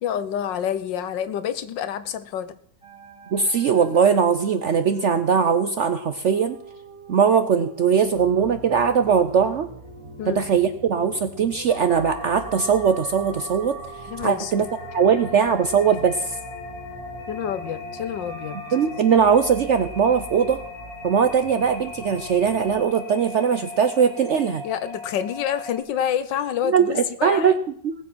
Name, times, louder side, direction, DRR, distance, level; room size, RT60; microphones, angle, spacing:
voice 1, 0.0-2.6 10.2-10.4 14.1-14.5 17.3-18.6 24.6-27.6, left 9 dB, 85° left, 13 dB, 1.6 m, -28 dB
sound 1, 2.8-18.9, right 2 dB, 15° right, 2.8 m, -45 dB
voice 2, 3.3-6.6 7.1-9.7 10.3-13.8 14.2-14.7 14.9-16.4 18.7-20.6 21.0-24.6 26.6-27.5 27.8-27.9, right 6 dB, 65° right, 9 dB, 0.7 m, -20 dB
sound 2, 8.0-22.8, right 4 dB, 50° right, 2.1 m, -44 dB
sound 3, 11.7-25.8, left 3 dB, 55° left, 2.2 m, -38 dB
18.5 x 7.4 x 6.1 m, 0.63 s
omnidirectional pair, 1.9 m